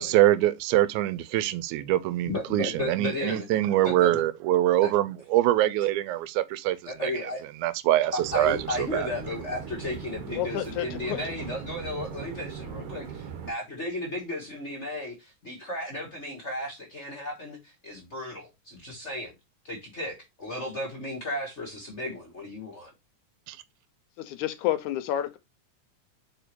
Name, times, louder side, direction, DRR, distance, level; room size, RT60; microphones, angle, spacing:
voice 1, 0.0-7.1 7.6-9.1 23.5-23.6, right 14 dB, 80° right, 2.0 m, -24 dB
voice 2, 2.3-3.4 3.8-4.2 4.8-4.9 6.8-7.4 8.3-19.3 19.6-22.9, left 1 dB, 40° left, 0.9 m, -34 dB
sound 1, 8.2-13.5, right 7 dB, 65° right, 1.4 m, -39 dB
voice 3, 10.3-11.3 24.2-25.4, left 12 dB, 80° left, 2.1 m, -30 dB
5.1 x 4.5 x 4.4 m
omnidirectional pair, 3.6 m